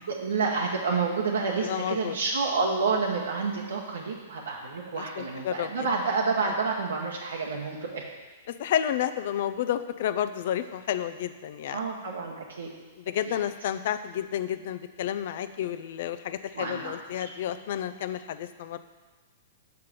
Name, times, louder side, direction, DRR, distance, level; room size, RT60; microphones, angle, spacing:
voice 1, 0.1-8.0 11.7-12.7 13.3-13.4 16.5-16.9, right 4 dB, 90° right, -2 dB, 1.1 m, -29 dB
voice 2, 1.6-2.2 5.0-5.9 8.5-11.8 13.0-18.8, left 10 dB, 60° left, 12 dB, 0.5 m, -31 dB
5.9 x 5.5 x 6.6 m, 1.3 s
hypercardioid pair, 130°, 0 cm